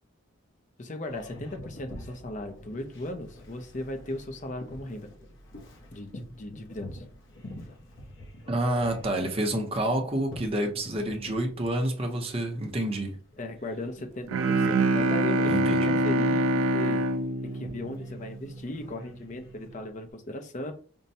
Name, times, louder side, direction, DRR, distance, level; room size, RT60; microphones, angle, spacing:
voice 1, 0.8-5.1 5.9-7.0 13.4-17.0 17.4-20.7, left 1 dB, 35° left, 0.5 m, -37 dB
Boat Water vehicle, 1.1-20.1, left 1 dB, 60° left, 0.9 m, -48 dB
voice 2, 8.5-13.2 15.5-16.0, right 1 dB, 25° right, 0.7 m, -28 dB
Bowed string instrument, 14.3-18.6, right 1 dB, 80° right, 0.4 m, -25 dB
5.3 x 2.2 x 2.7 m
head